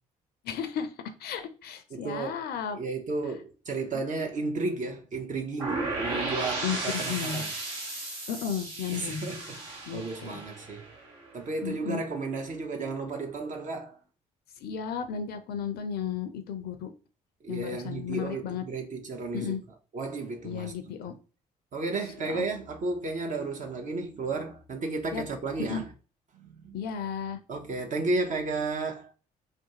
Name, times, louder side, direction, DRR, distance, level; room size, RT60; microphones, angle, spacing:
voice 1, 0.4-0.9 1.2-2.8 6.6-7.4 8.3-9.3 9.9-10.4 11.6-12.0 14.6-16.9 17.5-18.6 19.3-19.6 20.4-21.1 22.2-22.4 25.1-25.2 25.6-25.8 26.7-27.4, left 7 dB, 55° left, 0.4 m, -34 dB
voice 2, 1.9-2.4 2.7-7.5 8.9-10.9 11.3-14.0 17.4-19.6 19.9-21.0 21.7-25.9 26.3-26.8 27.5-29.1, right 3 dB, 40° right, 0.6 m, -33 dB
sound 1, 5.6-11.5, right 2 dB, 75° right, 1.0 m, -35 dB
2.5 x 2.3 x 2.8 m
figure-of-eight pair, 45°, 19 cm